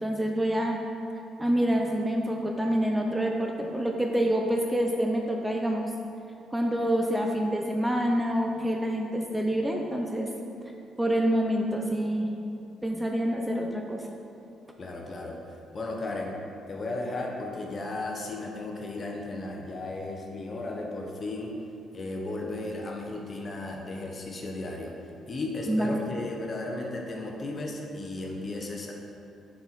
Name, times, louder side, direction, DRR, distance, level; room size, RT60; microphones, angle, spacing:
voice 1, 0.0-0.8 1.4-5.9 6.5-10.3 11.0-12.3 12.8-14.0 25.7-26.0, equal, 10° right, 1 dB, 0.5 m, -27 dB
voice 2, 14.8-15.4 15.7-16.4 16.7-21.5 21.9-25.0 25.3-28.9, left 2 dB, 40° left, 1 dB, 0.9 m, -35 dB
6.2 x 4.4 x 4.0 m, 2.7 s
cardioid pair, 90°, 0 cm